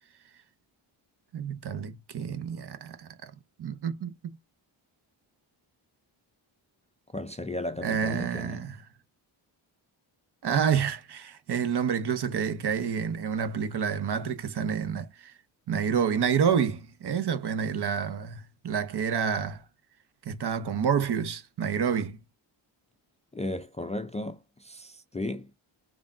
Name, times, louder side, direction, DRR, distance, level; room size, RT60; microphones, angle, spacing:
voice 1, 1.3-3.3 3.6-4.4 7.8-8.8 10.4-15.3 15.7-19.6 20.2-22.2, right 7 dB, 55° right, 0.8 m, -28 dB
voice 2, 7.1-8.6 23.3-25.5, left 2 dB, 15° left, 0.4 m, -35 dB
3.5 x 2.3 x 3.6 m
cardioid pair, 65°, 49 cm